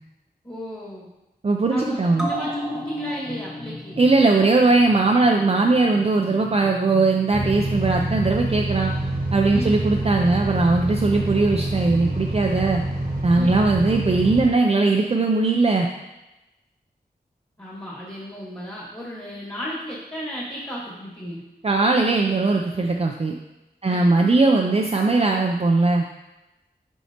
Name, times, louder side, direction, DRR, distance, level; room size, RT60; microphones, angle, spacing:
voice 1, 0.4-1.1 1.7-4.0 9.5-9.7 13.3-13.6 17.6-21.4 23.9-24.1, equal, 25° left, -6 dB, 1.7 m, -34 dB
voice 2, 1.4-2.3 4.0-8.9 9.3-12.8 13.2-15.9 21.6-23.4 23.8-26.1, right 3 dB, 35° right, 1 dB, 0.4 m, -19 dB
sound 1, 2.1-9.1 9.4-9.5, equal, ahead, 1.3 m, -35 dB
sound 2, 7.3-14.5, right 1 dB, 60° right, 1.3 m, -26 dB
7.2 x 4.6 x 2.9 m, 0.99 s
wide cardioid pair, 75°, 17 cm